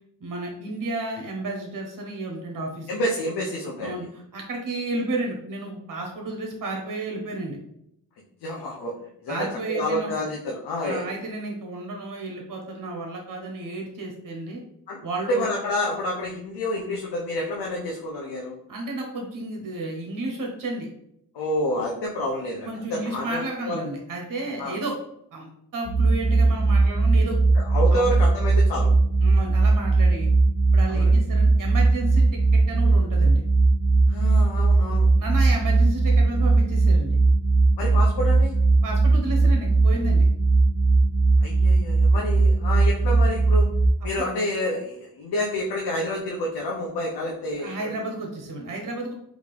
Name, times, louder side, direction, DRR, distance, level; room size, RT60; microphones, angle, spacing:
voice 1, 0.2-2.9 3.8-7.6 9.3-10.2 10.8-14.6 15.0-15.5 18.7-20.9 22.6-25.0 25.3-27.3 27.9-28.1 29.2-30.3 30.7-32.2 32.5-33.4 35.2-37.2 38.8-40.3 44.2-44.3 47.6-49.1, right 2 dB, 55° right, 1 dB, 0.8 m, -32 dB
voice 2, 2.9-4.0 8.4-8.9 9.2-9.4 9.7-11.0 14.9-15.0 15.3-18.5 21.3-23.8 24.6-24.8 27.6-28.9 30.9-31.1 34.1-35.1 37.8-38.5 41.4-43.7 44.0-47.9, left 1 dB, 90° left, -2 dB, 0.6 m, -28 dB
sound 1, 25.9-43.9, right 3 dB, 35° left, 0.7 m, -19 dB
3.5 x 2.5 x 3.2 m, 0.75 s
cardioid pair, 50°, 39 cm